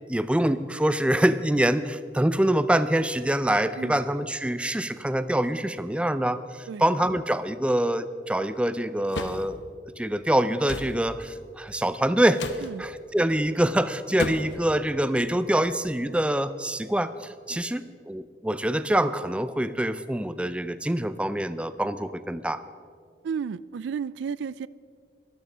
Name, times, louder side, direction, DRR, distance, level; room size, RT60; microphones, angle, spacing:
voice 1, 0.1-9.6 10.0-12.4 12.8-22.6, right 1 dB, 5° right, 13 dB, 0.3 m, -25 dB
sound 1, 9.1-9.4 10.7-10.9 12.3-12.7 14.2-14.6, left 2 dB, 90° left, 1.0 m, -32 dB
voice 2, 23.2-24.7, right 6 dB, 85° right, 20 dB, 0.3 m, -33 dB
12.5 x 12.0 x 6.2 m, 2.1 s
head